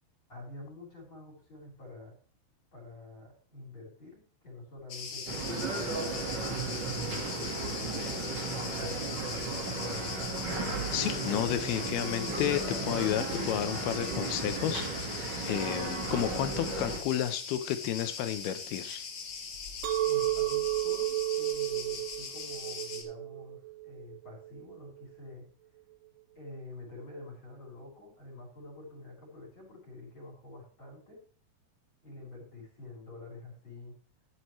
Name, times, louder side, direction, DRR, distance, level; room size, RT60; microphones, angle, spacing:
voice 1, 0.3-2.1 2.7-7.0 7.8-9.5 20.0-25.4 26.3-31.2 32.0-33.9, left 2 dB, 30° left, -2 dB, 5.0 m, -48 dB
Cricket, 4.9-23.0, left 5 dB, 60° left, 1.3 m, -40 dB
sound 1, 5.3-17.0, right 3 dB, 55° right, 1.2 m, -35 dB
voice 2, 10.9-19.0, left 11 dB, 80° left, 10 dB, 2.7 m, -32 dB
Chink clink, 19.8-25.0, right 16 dB, 75° right, 2.1 m, -32 dB
12.5 x 10.5 x 3.1 m, 0.41 s
omnidirectional pair, 4.6 m